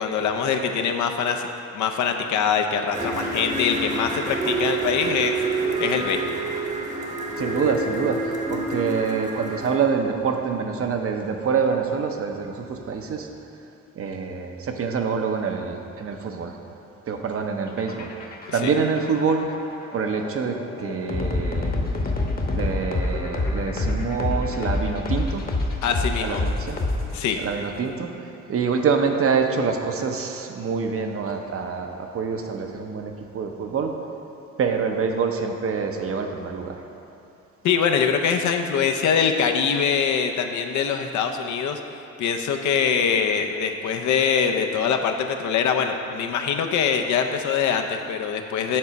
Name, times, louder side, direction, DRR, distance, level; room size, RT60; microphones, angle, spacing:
voice 1, 0.0-1.5 1.7-5.3 5.8-6.2 18.5-18.7 25.8-26.4 27.1-27.4 37.6-41.8 42.2-48.8, left 7 dB, 75° left, 5 dB, 0.6 m, -23 dB
sound 1, 2.9-9.8, right 3 dB, 25° right, 0.9 m, -28 dB
voice 2, 7.4-13.3 14.0-16.6 17.1-18.1 18.5-19.5 19.9-21.8 22.5-25.4 26.2-26.8 27.2-28.1 28.5-34.0 34.6-36.8, right 5 dB, 50° right, 4 dB, 0.7 m, -26 dB
sound 2, 17.7-27.4, left 2 dB, 30° left, 1.0 m, -27 dB
7.5 x 4.0 x 5.7 m, 2.7 s
cardioid pair, 90°, 30 cm